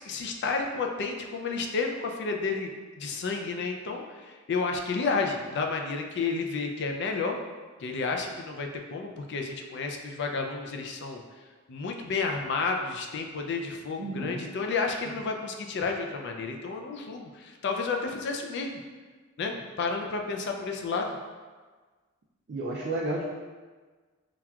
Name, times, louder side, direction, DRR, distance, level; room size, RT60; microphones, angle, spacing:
voice 1, 0.0-2.7 3.0-7.4 7.8-11.2 11.7-18.8 19.4-21.2, left 4 dB, 55° left, 3 dB, 0.4 m, -31 dB
voice 2, 14.0-14.4 22.5-23.2, right 2 dB, 50° right, -4 dB, 0.4 m, -31 dB
5.7 x 2.3 x 2.3 m, 1.4 s
head